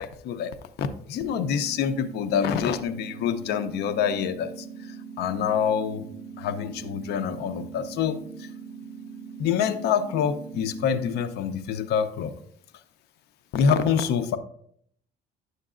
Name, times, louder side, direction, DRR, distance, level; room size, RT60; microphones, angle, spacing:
voice 1, 0.0-6.1 6.4-8.5 9.4-12.3 13.5-14.4, left 7 dB, 75° left, 10 dB, 0.7 m, -26 dB
sound 1, 1.2-11.2, right 6 dB, 55° right, 2.1 m, -41 dB
9.7 x 6.6 x 2.5 m, 0.66 s
cardioid pair, 110°, 17 cm